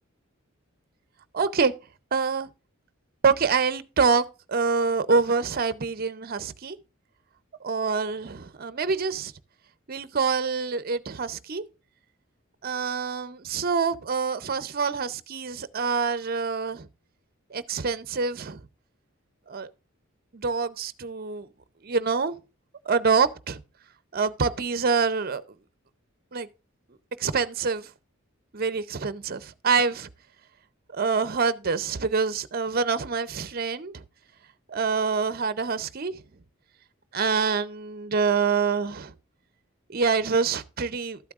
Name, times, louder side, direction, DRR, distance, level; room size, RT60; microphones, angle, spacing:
voice 1, 1.3-1.7 2.1-2.5 3.2-6.8 7.6-9.3 9.9-11.6 12.6-16.9 17.5-18.6 19.5-19.7 20.3-21.5 21.8-22.4 22.9-23.6 24.1-25.4 26.3-26.5 27.2-27.9 28.5-30.1 30.9-34.0 34.7-36.2 37.1-39.1 39.9-41.2, right 5 dB, 45° right, 0.6 m, -26 dB
13.0 x 8.3 x 2.4 m
head